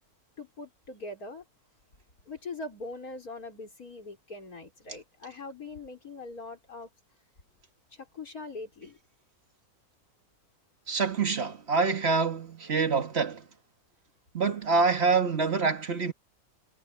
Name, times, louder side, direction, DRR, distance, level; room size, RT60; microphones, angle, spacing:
voice 1, 0.4-1.4 2.3-6.9 7.9-9.0, left 3 dB, 70° left, 5.2 m, -42 dB
voice 2, 10.9-13.5 14.3-16.1, right 4 dB, 45° right, 1.9 m, -26 dB
omnidirectional pair, 1.6 m